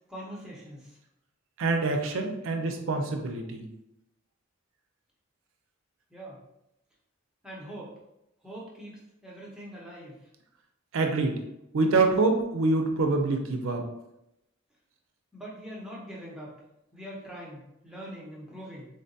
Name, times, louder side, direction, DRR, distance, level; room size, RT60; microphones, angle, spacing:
voice 1, 0.1-1.0 6.1-6.4 7.4-8.0 8.4-10.3 15.3-16.6 16.9-18.9, equal, 5° right, -5 dB, 0.6 m, -43 dB
voice 2, 1.6-3.7 10.9-11.4 11.7-13.8, right 3 dB, 65° right, 4 dB, 0.4 m, -25 dB
3.7 x 2.2 x 2.6 m, 0.86 s
head